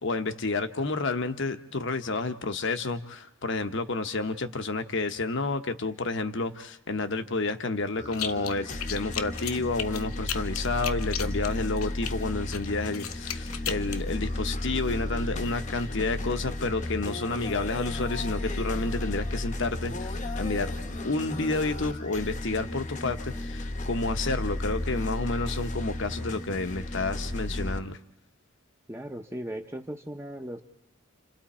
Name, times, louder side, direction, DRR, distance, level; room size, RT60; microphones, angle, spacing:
voice 1, 0.0-20.7 21.0-28.0, left 3 dB, 60° left, 9 dB, 1.0 m, -30 dB
sound 1, 8.0-27.8, left 1 dB, 35° left, 0.9 m, -33 dB
sound 2, 8.1-8.5 8.8-12.1 12.5-14.0, left 10 dB, 90° left, 0.8 m, -34 dB
voice 2, 28.9-30.6, right 1 dB, 10° right, 4 dB, 0.8 m, -37 dB
28.5 x 27.0 x 4.3 m, 0.83 s
head